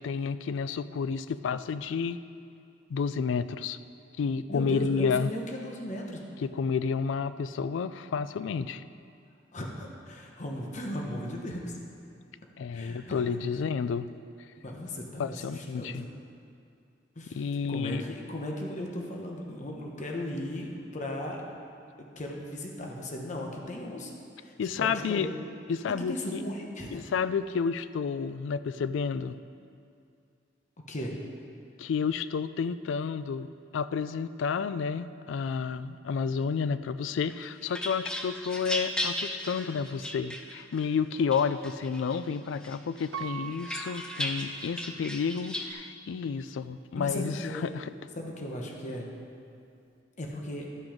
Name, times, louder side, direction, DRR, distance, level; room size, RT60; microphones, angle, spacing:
voice 1, 0.0-2.2 2.9-3.8 4.2-5.3 6.4-8.8 12.6-14.1 15.2-16.1 17.3-18.0 24.6-25.3 25.7-26.4 26.9-29.4 31.8-47.9, left 6 dB, 70° left, 14 dB, 0.3 m, -30 dB
voice 2, 4.5-6.2 9.5-11.8 12.7-13.4 14.6-16.1 17.2-21.4 22.0-24.1 24.4-25.3 26.1-27.1 30.9-31.2 44.5-44.7 47.0-47.7 48.2-49.1 50.2-50.7, left 1 dB, 40° left, 0 dB, 1.0 m, -37 dB
sound 1, 37.3-40.9 41.3-42.2 42.6-45.7, left 1 dB, 5° left, 0.6 m, -36 dB
Piano, 43.1-45.1 45.7-45.8, right 7 dB, 80° right, 0.5 m, -42 dB
12.0 x 6.1 x 5.0 m, 2.5 s
head